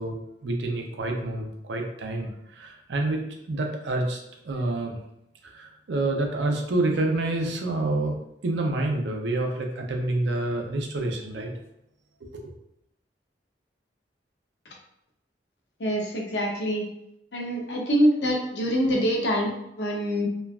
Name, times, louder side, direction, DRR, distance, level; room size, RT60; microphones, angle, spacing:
voice 1, 0.0-3.2 3.5-4.2 4.4-5.0 5.4-8.1 8.4-11.5 12.3-12.5, right 2 dB, 80° right, 3 dB, 0.5 m, -28 dB
voice 2, 15.8-16.9 17.3-20.3, equal, 75° left, 0 dB, 0.7 m, -25 dB
3.0 x 2.3 x 2.3 m, 0.80 s
head